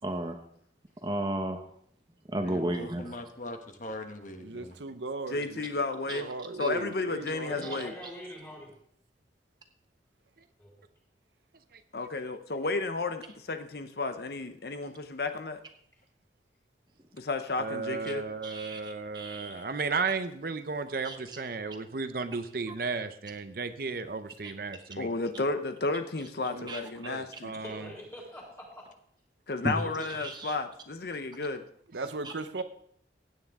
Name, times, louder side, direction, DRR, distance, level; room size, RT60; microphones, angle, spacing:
voice 1, 0.0-0.4 1.0-1.7 2.3-3.1 6.1-6.2 6.6-6.7 7.7-7.8 18.4-19.6 21.0-21.4 24.4-24.5 26.4-26.8 29.6-29.8 30.1-30.6 32.2-32.3, right 1 dB, 25° right, 0.9 m, -34 dB
voice 2, 2.4-4.8, left 1 dB, 45° left, 1.1 m, -41 dB
voice 3, 4.4-5.8 6.1-7.6 26.5-26.7 27.0-27.3 31.9-32.6, right 3 dB, 85° right, 0.9 m, -37 dB
voice 4, 5.3-6.3 6.6-7.9 11.9-15.6 17.2-18.2 19.5-19.7 24.9-27.5 29.5-31.6, left 3 dB, 60° left, 0.7 m, -32 dB
voice 5, 7.4-8.7 10.6-10.7 27.6-28.9 29.7-30.2, equal, 15° left, 3.9 m, -44 dB
voice 6, 17.6-25.1 27.4-27.9 32.0-32.1, right 4 dB, 55° right, 0.6 m, -34 dB
16.0 x 9.4 x 3.6 m
head